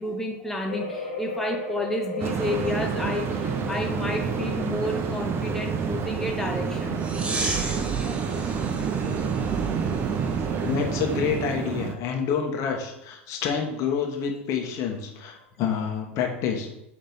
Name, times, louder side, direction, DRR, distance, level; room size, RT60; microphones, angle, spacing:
voice 1, 0.0-7.0 8.0-8.3 9.4-9.6, left 1 dB, 5° left, 1 dB, 0.7 m, -31 dB
sound 1, 0.7-10.2 10.6-10.7 11.1-11.2, left 3 dB, 75° left, 1.8 m, -38 dB
sound 2, 2.2-11.9, right 6 dB, 35° right, 0.7 m, -28 dB
sound 3, 7.0-11.4, right 3 dB, 15° right, 1.0 m, -34 dB
voice 2, 10.6-16.7, left 6 dB, 45° left, 2 dB, 1.3 m, -28 dB
6.4 x 3.3 x 5.4 m, 0.84 s
figure-of-eight pair, 85°, 7 cm